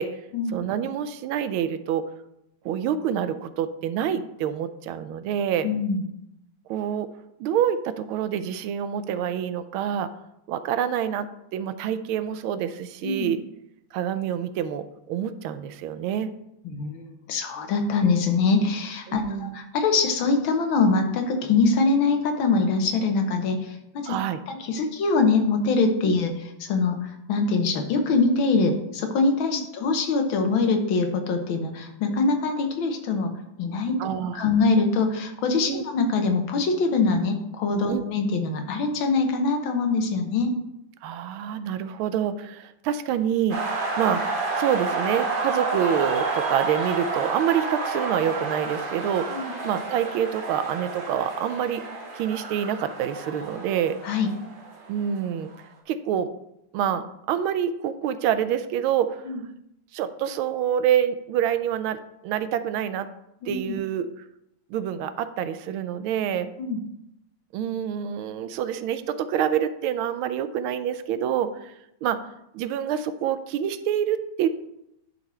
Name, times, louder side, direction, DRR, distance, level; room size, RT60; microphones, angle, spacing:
voice 1, 0.5-2.1 2.6-5.7 6.7-7.1 7.4-10.1 10.5-13.4 13.9-16.3 19.1-19.5 24.1-24.4 26.0-26.1 29.5-29.7 34.0-34.5 35.7-35.8 37.9-38.0 41.0-44.2 44.6-51.8 52.2-54.0 54.9-55.5 55.9-56.3 56.7-59.2 59.9-63.1 63.5-64.1 64.7-66.5 67.5-71.7 72.0-72.2 72.5-74.5, right 9 dB, 85° right, 12 dB, 1.4 m, -27 dB
voice 2, 5.6-6.0 13.0-13.3 16.6-24.2 24.5-34.0 34.3-40.5 49.3-49.5 54.0-54.3 59.3-59.4 63.4-63.8 66.6-66.8, left 4 dB, 75° left, 5 dB, 1.7 m, -23 dB
sound 1, 43.5-55.2, right 3 dB, 30° right, 1.2 m, -30 dB
11.0 x 4.1 x 4.3 m, 0.83 s
omnidirectional pair, 2.3 m